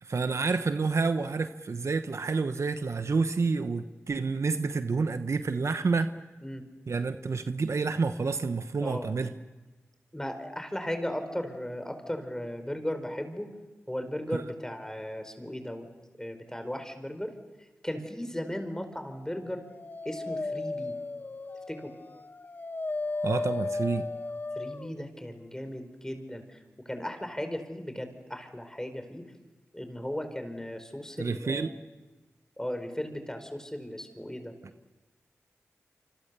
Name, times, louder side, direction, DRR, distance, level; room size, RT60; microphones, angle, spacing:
voice 1, 0.0-6.1 6.9-9.3 14.3-14.4 23.2-24.0 31.2-31.7, right 4 dB, 65° right, 9 dB, 1.1 m, -29 dB
voice 2, 10.1-13.5 13.9-15.9 16.2-17.3 17.8-19.6 20.0-20.9 21.7-21.9 24.6-26.6 26.8-29.2 29.7-31.7 32.6-34.5, equal, 10° left, 8 dB, 4.7 m, -36 dB
Dog, 19.4-25.0, left 3 dB, 40° left, 0.9 m, -35 dB
27.0 x 25.5 x 7.0 m, 1.2 s
cardioid pair, 40°, 5 cm